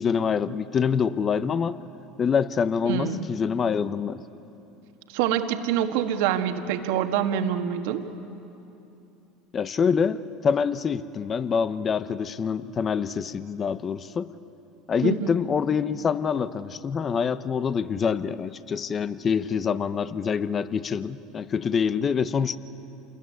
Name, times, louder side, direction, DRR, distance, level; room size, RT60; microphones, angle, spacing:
voice 1, 0.0-1.8 2.2-4.2 9.5-14.3 14.9-22.6, left 6 dB, 35° left, 14 dB, 0.9 m, -26 dB
voice 2, 2.9-3.3 5.1-8.1 15.0-15.3, right 9 dB, 75° right, 6 dB, 1.7 m, -26 dB
27.5 x 21.0 x 9.8 m, 2.9 s
hypercardioid pair, 90°, 0 cm